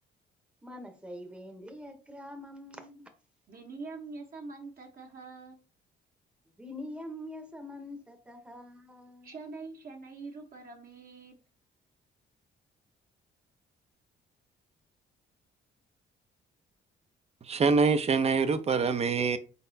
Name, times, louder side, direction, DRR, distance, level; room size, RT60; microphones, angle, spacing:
voice 1, 0.6-3.1 6.6-9.4, left 1 dB, 5° right, 0.9 m, -44 dB
voice 2, 3.5-5.6 9.2-11.4, right 3 dB, 50° right, 1.0 m, -44 dB
voice 3, 17.4-19.4, right 4 dB, 30° right, 0.6 m, -25 dB
4.2 x 4.0 x 2.7 m
cardioid pair, 90°, 20 cm